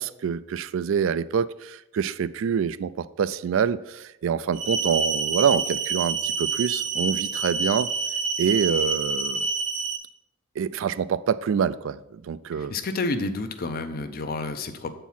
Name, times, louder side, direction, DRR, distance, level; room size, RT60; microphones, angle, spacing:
voice 1, 0.0-7.9 8.4-9.5 10.6-12.7, right 7 dB, 65° right, 17 dB, 0.3 m, -26 dB
sound 1, 4.5-10.0, right 4 dB, 40° right, 0.8 m, -27 dB
voice 2, 12.6-14.9, left 3 dB, 45° left, 9 dB, 0.6 m, -30 dB
8.2 x 4.5 x 5.5 m, 0.91 s
head